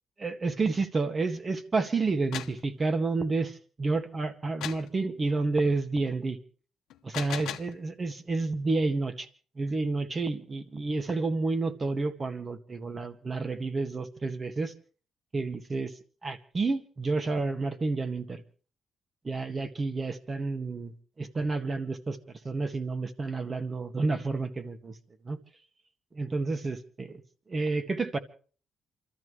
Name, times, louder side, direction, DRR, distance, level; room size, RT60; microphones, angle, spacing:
voice 1, 0.2-6.4 7.0-9.3 9.6-14.7 15.3-15.9 16.2-18.4 19.2-20.9 21.2-22.2 22.4-24.9 25.2-25.4 26.1-27.2 27.5-28.2, right 3 dB, 35° right, 8 dB, 1.7 m, -30 dB
sound 1, 2.1-2.6 4.6-4.9 6.9-7.8, left 11 dB, 85° left, 0.8 m, -37 dB
28.5 x 13.5 x 3.3 m, 0.41 s
cardioid pair, 90°, 0 cm